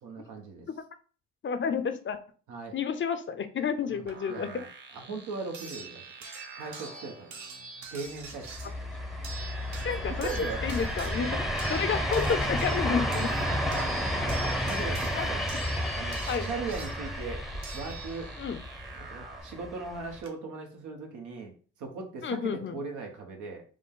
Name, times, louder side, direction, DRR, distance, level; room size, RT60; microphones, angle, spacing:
voice 1, 0.0-0.7 2.5-2.7 3.9-4.7 4.9-6.0 6.6-7.3 7.9-8.5 10.2-10.6 11.8-12.0 13.5-15.5 15.9-18.3 19.0-21.5 21.8-23.6, right 4 dB, 85° right, 2 dB, 1.2 m, -39 dB
voice 2, 1.4-2.2 2.7-4.6 8.6-8.7 9.8-13.3 14.1-14.3 15.2-15.3 16.3-16.5 18.4-18.6 22.2-22.8, left 6 dB, 40° left, 10 dB, 0.5 m, -31 dB
sound 1, 4.1-19.4, right 3 dB, 40° right, 1.2 m, -50 dB
sound 2, 4.1-4.2 5.5-18.5 19.8-19.9 20.2-20.3, right 4 dB, 65° right, 1.1 m, -45 dB
sound 3, 8.3-20.2, equal, ahead, 0.7 m, -32 dB
5.0 x 2.1 x 3.7 m, 0.39 s
cardioid pair, 90°, 30 cm